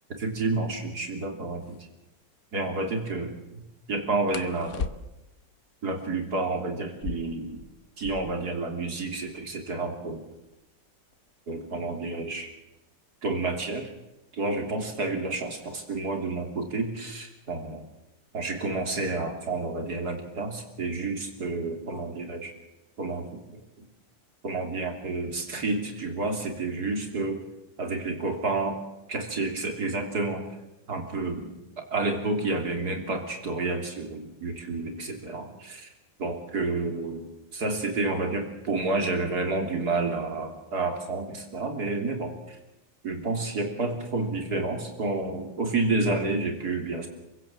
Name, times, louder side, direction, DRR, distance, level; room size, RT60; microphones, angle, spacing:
voice 1, 0.2-1.8 2.5-3.6 3.9-4.9 5.8-7.6 8.0-10.3 11.5-12.5 13.2-13.9 14.3-17.9 18.3-22.5 23.0-23.9 24.4-27.4 27.8-28.8 29.1-30.5 30.9-31.6 31.9-35.9 36.2-42.6 43.0-47.1, right 3 dB, 55° right, 4 dB, 3.7 m, -30 dB
sound 1, 1.6-1.8 4.3-5.4 6.8-8.5 8.8-8.9 9.1-9.7 10.3-12.9 13.9-14.2 14.6-15.1 15.4-16.1, left 5 dB, 50° left, 1.1 m, -39 dB
28.5 x 16.0 x 7.6 m, 0.95 s
omnidirectional pair, 2.0 m